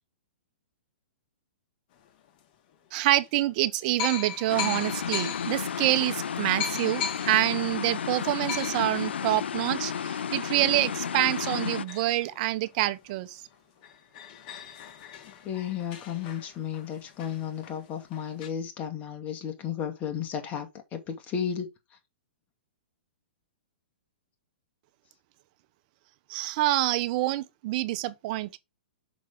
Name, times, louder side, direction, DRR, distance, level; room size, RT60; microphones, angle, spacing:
sound 1, 2.3-2.4 3.2-3.3 4.0-13.1 13.5-13.6 13.8-18.5, left 7 dB, 45° left, 1.9 m, -39 dB
voice 1, 2.9-9.9 10.3-13.3 26.3-28.6, right 16 dB, 45° right, 0.9 m, -26 dB
sound 2, 4.5-11.8, left 7 dB, 80° left, 0.4 m, -32 dB
voice 2, 15.4-21.7, left 8 dB, 30° left, 2.1 m, -33 dB
6.2 x 6.2 x 3.7 m
hypercardioid pair, 130°, 6 cm